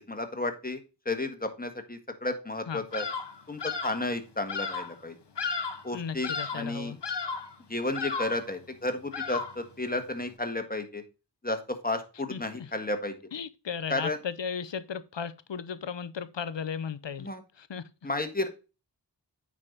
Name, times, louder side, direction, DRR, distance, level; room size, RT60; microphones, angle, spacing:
voice 1, 0.1-0.8 1.0-3.0 3.5-5.1 5.8-6.9 7.7-11.0 11.4-13.1 13.9-14.2 17.2-17.4 18.0-18.5, left 2 dB, 20° left, 1.7 m, -32 dB
Bird vocalization bird call bird song, 2.9-3.3 3.6-4.0 4.5-4.9 5.4-5.9 6.2-6.7 7.0-7.5 7.9-8.5 9.1-9.7, left 5 dB, 75° left, 1.1 m, -34 dB
voice 2, 5.9-7.0 12.3-12.7 13.3-18.1, left 7 dB, 90° left, 0.8 m, -36 dB
8.9 x 5.1 x 3.9 m
wide cardioid pair, 50°, 42 cm